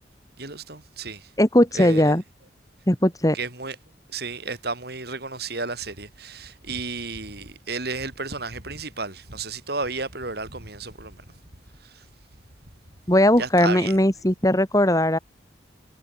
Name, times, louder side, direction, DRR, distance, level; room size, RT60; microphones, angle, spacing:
voice 1, 0.4-1.3 1.7-2.2 3.3-3.8 4.1-11.3 11.8-12.1 13.4-14.0, right 3 dB, 60° right, 6.0 m, -33 dB
voice 2, 1.4-2.2 2.9-3.4 13.1-15.2, left 1 dB, 20° left, 3.0 m, -19 dB
head